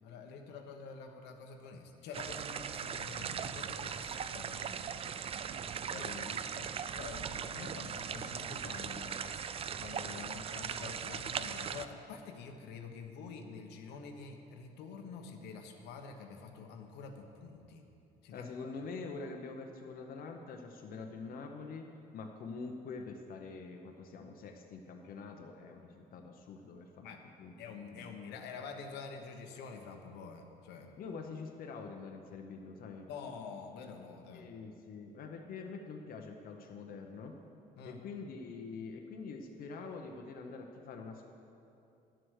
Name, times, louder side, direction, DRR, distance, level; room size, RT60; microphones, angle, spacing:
voice 1, 0.0-5.0 5.9-9.4 9.8-17.8 18.2-18.7 27.0-27.2 27.6-30.9 33.1-34.5 37.8-38.0, left 5 dB, 85° left, 4 dB, 1.1 m, -47 dB
sound 1, 2.1-11.9, right 7 dB, 35° right, 0.4 m, -39 dB
voice 2, 18.3-21.9 22.1-27.0 27.4-27.5 27.9-28.2 31.0-33.1 34.3-37.3 37.8-41.3, left 4 dB, 60° left, 3 dB, 0.9 m, -45 dB
10.5 x 7.8 x 6.4 m, 2.7 s
cardioid pair, 110°, 17 cm